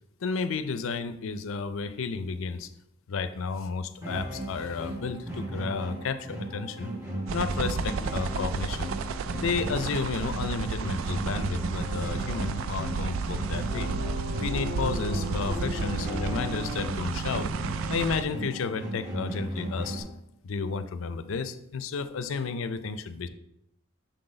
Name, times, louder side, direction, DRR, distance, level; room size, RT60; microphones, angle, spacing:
voice 1, 0.2-2.7 3.1-6.9 7.3-8.9 9.3-13.9 14.4-17.5 17.9-20.0 20.4-23.3, left 5 dB, 70° left, 11 dB, 0.4 m, -32 dB
sound 1, 4.0-20.0, right 1 dB, 15° right, 1.6 m, -36 dB
sound 2, 7.3-18.2, right 5 dB, 70° right, 0.3 m, -32 dB
sound 3, 13.7-18.7, left 2 dB, 30° right, 1.3 m, -39 dB
6.4 x 3.8 x 3.9 m, 0.82 s
head